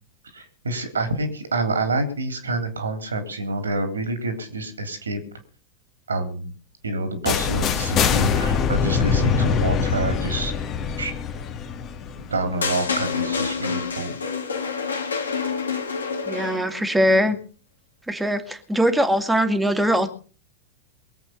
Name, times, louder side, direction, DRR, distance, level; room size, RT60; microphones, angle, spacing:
voice 1, 0.3-5.2 6.1-6.5 6.8-10.5 11.0-11.1 12.2-14.2, right 2 dB, 75° right, 7 dB, 3.5 m, -27 dB
sound 1, 7.3-13.1, left 6 dB, 30° left, 1.9 m, -23 dB
sound 2, 12.6-16.9, left 5 dB, 70° left, 2.2 m, -27 dB
voice 2, 16.3-17.4 18.1-20.1, equal, 5° right, 8 dB, 2.2 m, -21 dB
23.5 x 8.4 x 5.3 m, 0.40 s
figure-of-eight pair, 90°, 0 cm